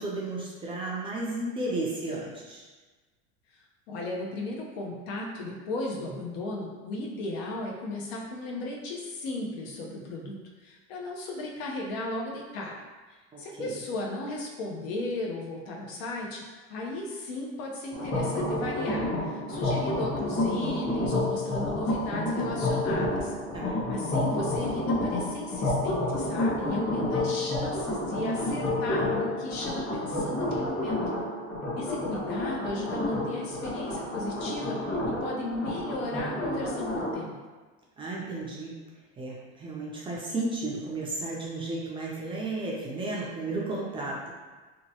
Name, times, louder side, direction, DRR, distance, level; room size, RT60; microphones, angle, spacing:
voice 1, 0.0-2.6 13.3-13.8 23.5-24.0 38.0-38.8 39.2-44.3, right 2 dB, 15° right, -4 dB, 0.4 m, -33 dB
voice 2, 3.9-12.8 13.4-16.4 16.7-23.3 23.7-31.0 31.8-37.3, left 2 dB, 80° left, -2 dB, 0.8 m, -35 dB
sound 1, 17.9-37.1, left 1 dB, 40° left, 1.0 m, -30 dB
2.9 x 2.2 x 2.7 m, 1.3 s
supercardioid pair, 135°, 31 cm